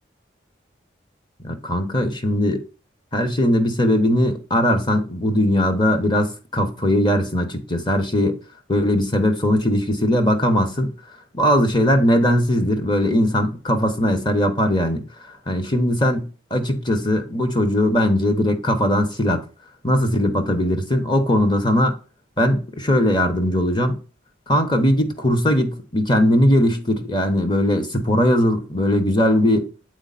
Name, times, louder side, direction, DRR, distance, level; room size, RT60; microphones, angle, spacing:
voice 1, 1.4-2.6 3.1-8.4 8.7-10.9 11.3-15.0 15.5-19.4 19.8-21.9 22.4-24.0 24.5-29.7, equal, 25° left, 1.0 m, -19 dB
8.0 x 4.2 x 4.0 m
head